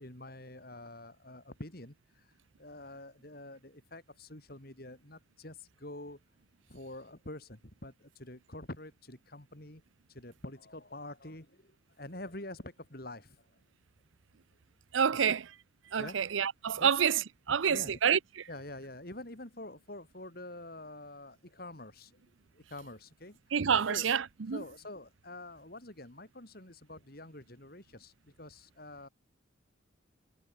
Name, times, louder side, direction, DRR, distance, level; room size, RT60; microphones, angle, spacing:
voice 1, 0.0-6.2 6.7-9.8 10.1-13.6 15.1-15.4 16.0-16.2 16.8-17.0 17.5-18.0 18.5-22.2 22.5-23.5 23.9-24.1 24.5-29.1, left 1 dB, 50° left, 4.7 m, -47 dB
voice 2, 14.9-15.4 15.9-17.2 17.5-18.4 23.5-24.6, right 7 dB, 90° right, 0.6 m, -28 dB
head